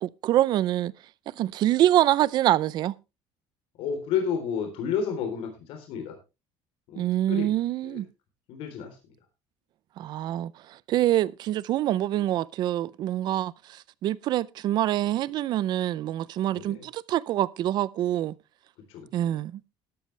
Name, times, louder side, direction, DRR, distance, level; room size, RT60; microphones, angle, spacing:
voice 1, 0.0-0.9 1.4-2.9 7.0-8.0 10.0-10.5 10.9-13.5 14.0-18.3 19.1-19.6, right 13 dB, 45° right, 0.5 m, -25 dB
voice 2, 3.8-6.2 6.9-7.5 7.8-8.0 8.5-9.0 16.6-16.9 18.9-19.4, left 7 dB, 65° left, 3.6 m, -31 dB
13.0 x 12.5 x 3.3 m
cardioid pair, 170°, 10 cm